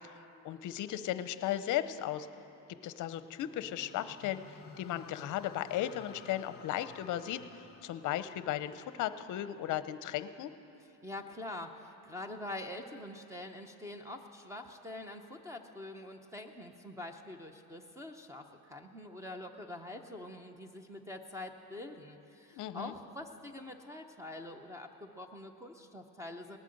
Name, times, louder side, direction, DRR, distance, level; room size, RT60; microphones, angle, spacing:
voice 1, 0.4-2.3 2.7-10.5 22.6-23.0, left 12 dB, 50° left, 13 dB, 0.7 m, -36 dB
sound 1, 3.1-9.4, left 6 dB, 25° left, 1.0 m, -55 dB
voice 2, 11.0-26.6, left 1 dB, 5° right, 6 dB, 0.6 m, -45 dB
19.0 x 9.1 x 7.7 m, 2.9 s
cardioid pair, 150°, 40 cm